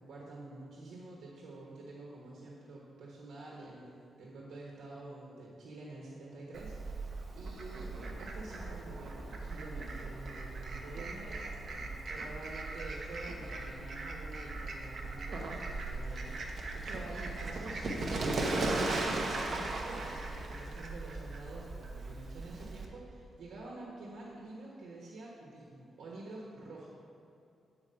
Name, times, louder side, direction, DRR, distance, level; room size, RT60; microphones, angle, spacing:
voice 1, 0.0-7.9 8.2-17.9 18.4-26.9, right 2 dB, 80° right, -4 dB, 1.2 m, -48 dB
Fowl, 6.5-22.8, right 2 dB, 45° right, 0.8 m, -38 dB
8.9 x 4.7 x 5.5 m, 2.6 s
wide cardioid pair, 170°, 0 cm